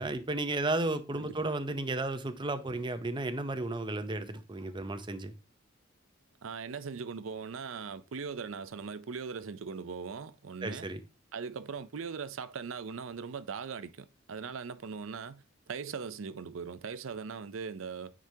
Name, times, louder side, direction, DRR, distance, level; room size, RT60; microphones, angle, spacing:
voice 1, 0.0-5.3 10.6-11.0, right 2 dB, 25° right, 0.6 m, -33 dB
voice 2, 6.4-10.9 11.3-18.1, right 5 dB, 90° right, 0.5 m, -40 dB
9.3 x 4.9 x 2.8 m
head